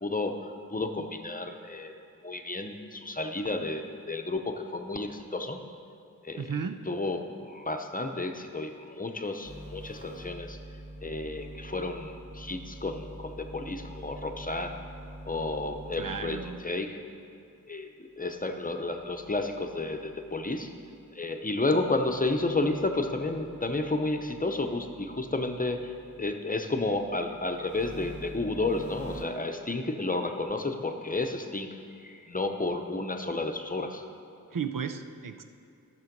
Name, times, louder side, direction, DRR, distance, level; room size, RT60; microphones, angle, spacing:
voice 1, 0.0-2.0 2.2-5.6 6.2-6.5 6.9-10.6 11.0-14.8 15.3-16.4 16.6-17.0 17.7-17.9 18.2-20.7 21.1-25.9 26.2-34.0, left 2 dB, 25° left, 5 dB, 0.8 m, -31 dB
voice 2, 6.4-6.8 15.9-16.6 34.5-35.4, right 6 dB, 65° right, 8 dB, 0.6 m, -34 dB
sound 1, 9.4-16.9 18.9-21.1 21.5-26.3 26.7-29.2, right 1 dB, 20° right, 2.5 m, -46 dB
13.0 x 6.8 x 5.3 m, 2.5 s
wide cardioid pair, 70°, 35 cm